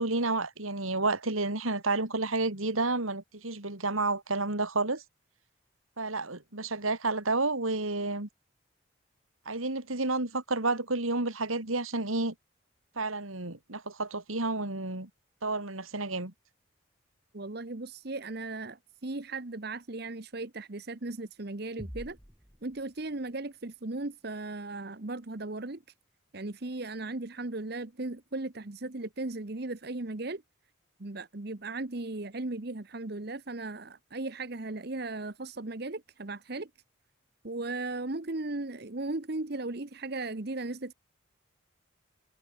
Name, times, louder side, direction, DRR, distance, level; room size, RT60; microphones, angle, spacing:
voice 1, 0.0-5.0 6.0-8.3 9.4-12.3 12.9-15.1 15.4-16.3, right 3 dB, 85° right, 3.4 m, -30 dB
voice 2, 17.3-22.2 22.6-25.8 26.3-30.4 31.0-36.7 37.4-40.9, right 2 dB, 50° right, 1.1 m, -37 dB
sound 1, 21.8-23.5, equal, 5° right, 4.3 m, -47 dB
head